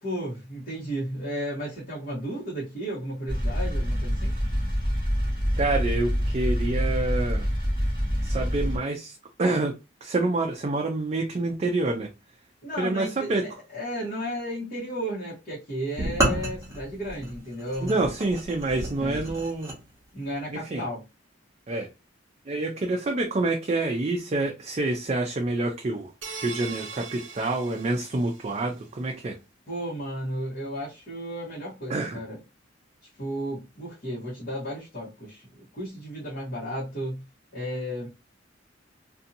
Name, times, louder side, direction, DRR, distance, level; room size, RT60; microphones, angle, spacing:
voice 1, 0.0-4.3 12.6-18.1 19.0-19.3 20.1-21.0 29.7-32.4 33.2-37.2 37.5-38.1, equal, 45° left, 1.2 m, -34 dB
sound 1, 3.3-8.8, equal, 25° left, 1.2 m, -26 dB
voice 2, 5.6-7.5 8.2-9.7 10.0-12.1 12.8-13.4 17.8-19.7 20.7-20.8 21.7-21.9 22.5-26.1 26.4-29.3 31.9-32.2, right 2 dB, 35° right, 0.4 m, -27 dB
sound 2, 16.0-19.8, right 1 dB, 15° right, 1.0 m, -30 dB
sound 3, 26.2-28.7, right 5 dB, 70° right, 0.7 m, -40 dB
2.7 x 2.6 x 2.5 m
head